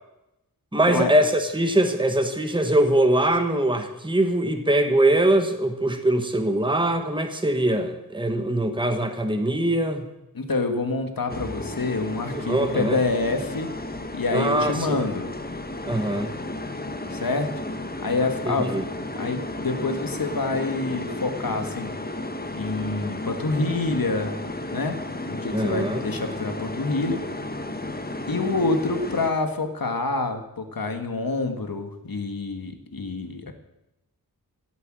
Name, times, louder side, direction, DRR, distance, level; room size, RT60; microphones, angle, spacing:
voice 1, 0.7-10.1 12.4-13.0 14.3-15.0 15.9-16.3 18.4-18.8 25.5-26.0, right 1 dB, 15° right, 6 dB, 1.4 m, -22 dB
voice 2, 10.3-13.7 14.1-15.3 17.1-17.5 18.0-18.7 19.2-22.0 22.5-24.3 24.7-25.0 25.2-27.2 28.3-33.5, left 3 dB, 70° left, 7 dB, 1.8 m, -27 dB
sound 1, 11.3-29.3, left 2 dB, 25° left, 1.3 m, -33 dB
17.0 x 8.3 x 7.6 m, 0.92 s
wide cardioid pair, 75°, 36 cm